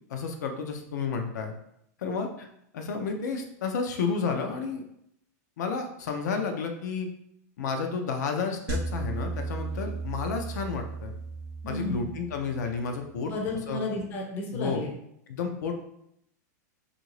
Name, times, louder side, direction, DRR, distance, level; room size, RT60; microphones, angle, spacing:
voice 1, 0.1-1.5 2.0-2.5 2.7-4.8 5.6-7.1 7.6-11.1 11.7-13.3 13.7-13.8 14.5-14.8 15.3-15.7, left 5 dB, 80° left, 4 dB, 0.5 m, -31 dB
sound 1, 8.7-13.0, right 3 dB, 35° right, 0.3 m, -35 dB
voice 2, 11.6-12.1 13.3-14.9, left 2 dB, 20° left, 0 dB, 0.5 m, -32 dB
2.8 x 2.5 x 3.0 m, 0.75 s
supercardioid pair, 170°, 9 cm